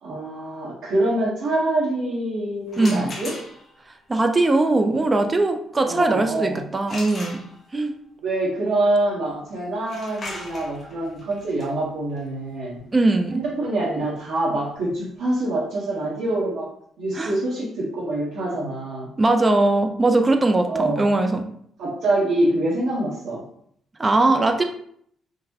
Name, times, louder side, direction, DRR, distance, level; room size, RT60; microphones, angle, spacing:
voice 1, 0.0-3.3 5.8-6.6 8.2-12.8 13.3-16.7 17.0-19.1 20.7-21.1 21.8-23.4, right 2 dB, 80° right, -9 dB, 1.0 m, -25 dB
sound 1, 2.7-3.8 6.9-7.9 9.8-15.4, left 2 dB, 40° left, 0.8 m, -39 dB
voice 2, 2.8-3.1 4.1-7.4 7.7-7.9 12.9-13.4 17.1-17.3 19.2-21.4 24.0-24.6, right 2 dB, 25° right, 5 dB, 0.4 m, -20 dB
3.9 x 2.1 x 2.8 m, 0.67 s
cardioid pair, 90°, 0 cm